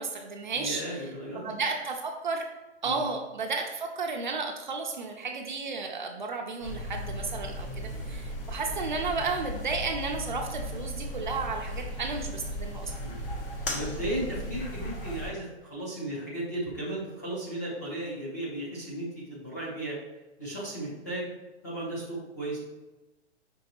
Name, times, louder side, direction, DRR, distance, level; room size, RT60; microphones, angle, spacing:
voice 1, 0.0-0.8 1.4-2.4 2.8-12.9, right 4 dB, 45° right, 2 dB, 0.4 m, -33 dB
voice 2, 0.5-1.5 2.8-3.1 13.0-13.2 13.7-20.0 20.4-21.3 21.6-22.6, right 1 dB, 15° left, -6 dB, 0.5 m, -35 dB
sound 1, 6.6-15.3, equal, 55° left, 0.9 m, -36 dB
5.3 x 3.2 x 2.8 m, 1.1 s
hypercardioid pair, 175°, 34 cm